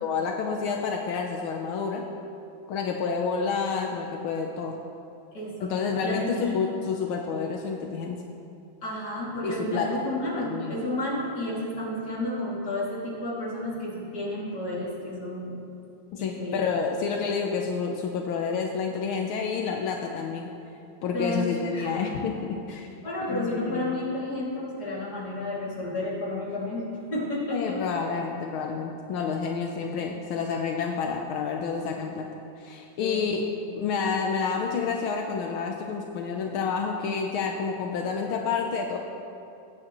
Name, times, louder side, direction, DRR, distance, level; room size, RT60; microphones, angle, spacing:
voice 1, 0.0-2.0 2.7-4.7 5.6-8.2 9.4-9.9 10.4-10.7 16.1-20.5 21.0-22.9 23.3-23.9 27.5-32.3 32.6-33.4 33.8-39.0, left 5 dB, 80° left, 1 dB, 1.6 m, -29 dB
voice 2, 5.3-6.6 8.8-15.6 16.2-16.6 21.1-22.0 23.0-27.8 33.0-33.7, left 1 dB, 50° left, -6 dB, 3.1 m, -31 dB
20.5 x 9.0 x 3.1 m, 2.6 s
omnidirectional pair, 2.3 m